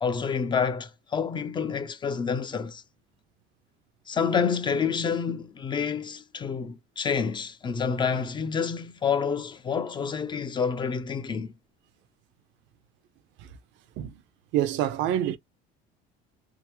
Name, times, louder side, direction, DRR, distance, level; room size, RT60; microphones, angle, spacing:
voice 1, 0.0-2.8 4.1-11.5, left 6 dB, 25° left, 0.5 m, -28 dB
voice 2, 14.5-15.4, right 12 dB, 70° right, 0.6 m, -27 dB
3.5 x 2.0 x 2.9 m
cardioid pair, 140°, 20 cm